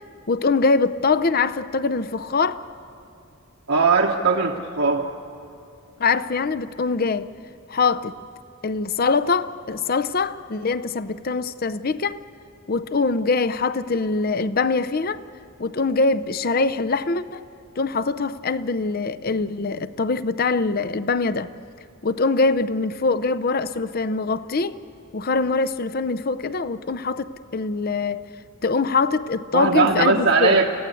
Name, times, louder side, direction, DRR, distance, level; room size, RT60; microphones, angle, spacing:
voice 1, 0.3-2.6 6.0-7.3 7.7-8.1 8.6-12.2 12.7-15.2 15.6-17.4 17.8-21.5 22.0-24.8 25.1-28.3 28.6-30.6, left 4 dB, 45° left, 0.6 m, -23 dB
voice 2, 3.7-5.1 29.5-30.6, right 4 dB, 75° right, 1.4 m, -19 dB
29.5 x 16.0 x 8.4 m
head